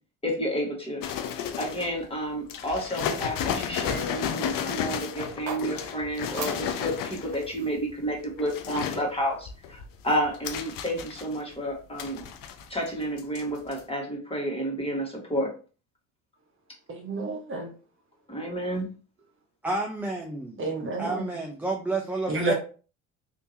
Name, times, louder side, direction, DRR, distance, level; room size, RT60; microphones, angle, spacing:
voice 1, 0.2-1.0 1.6-12.2 12.7-15.5 18.3-18.9, equal, 15° left, 1.7 m, -30 dB
sound 1, 1.0-2.0 2.5-7.5 8.1-9.0 9.5-11.5 12.0-12.9 13.2-13.4 13.7-13.8, left 8 dB, 55° left, 0.7 m, -32 dB
sound 2, 5.2-9.4, right 5 dB, 70° right, 1.0 m, -42 dB
voice 2, 16.9-17.7 20.6-21.3 22.3-22.5, right 2 dB, 30° right, 1.0 m, -30 dB
voice 3, 19.6-20.5 21.0-22.5, right 3 dB, 5° right, 0.5 m, -30 dB
3.5 x 2.8 x 2.7 m
hypercardioid pair, 70°, 41 cm